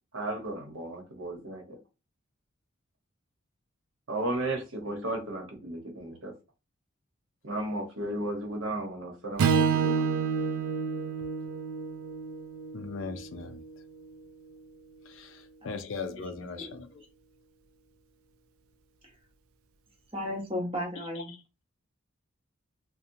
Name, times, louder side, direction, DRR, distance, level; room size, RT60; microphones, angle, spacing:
voice 1, 0.1-1.8 4.1-6.3 7.4-10.2, right 1 dB, 75° right, 0.9 m, -34 dB
Strum, 9.4-13.7, right 6 dB, 90° right, 0.3 m, -29 dB
voice 2, 12.7-13.6 15.1-17.0 21.0-21.4, left 4 dB, 70° left, 0.4 m, -39 dB
voice 3, 15.6-16.0 16.3-16.8 20.1-21.3, left 1 dB, 25° right, 0.9 m, -35 dB
2.8 x 2.1 x 2.6 m
head